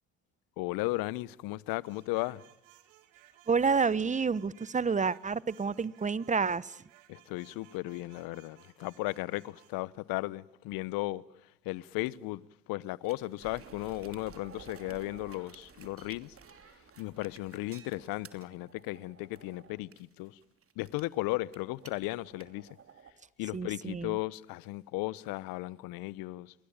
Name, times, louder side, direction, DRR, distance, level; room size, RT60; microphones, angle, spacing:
voice 1, 0.6-2.4 7.1-11.2 11.6-16.3 17.0-20.4 20.8-22.7 23.4-26.5, left 20 dB, 65° left, 1.1 m, -35 dB
sound 1, 1.8-9.8, right 14 dB, 80° right, 2.6 m, -61 dB
voice 2, 3.5-6.8 23.5-24.2, right 5 dB, 20° right, 1.1 m, -29 dB
sound 2, 13.0-23.1, right 6 dB, 35° right, 3.0 m, -53 dB
30.0 x 22.5 x 8.9 m
hypercardioid pair, 70°, 38 cm